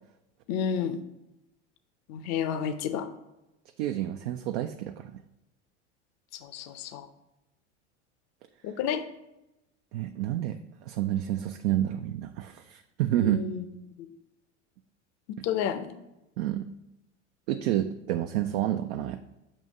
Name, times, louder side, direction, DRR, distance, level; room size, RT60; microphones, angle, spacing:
voice 1, 0.5-1.0 2.1-3.1 6.3-7.1 8.6-9.0 13.2-13.6 15.3-15.9, left 8 dB, 45° left, 10 dB, 0.6 m, -31 dB
voice 2, 3.8-5.2 9.9-10.6 10.9-13.4 15.4-15.5 16.4-16.7 17.5-19.2, right 13 dB, 65° right, 7 dB, 0.5 m, -29 dB
7.4 x 2.7 x 5.2 m, 0.93 s
hypercardioid pair, 95°, 36 cm